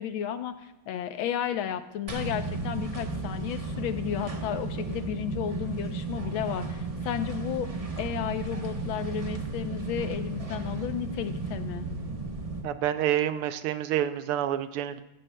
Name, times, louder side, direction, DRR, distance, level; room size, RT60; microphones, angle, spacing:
voice 1, 0.0-7.7 8.0-11.9, left 9 dB, 75° left, 10 dB, 1.4 m, -33 dB
sound 1, 2.1-12.6, right 3 dB, 50° right, 0.4 m, -34 dB
voice 2, 12.6-15.0, right 11 dB, 90° right, 11 dB, 1.6 m, -28 dB
16.5 x 14.5 x 2.2 m, 0.91 s
omnidirectional pair, 2.4 m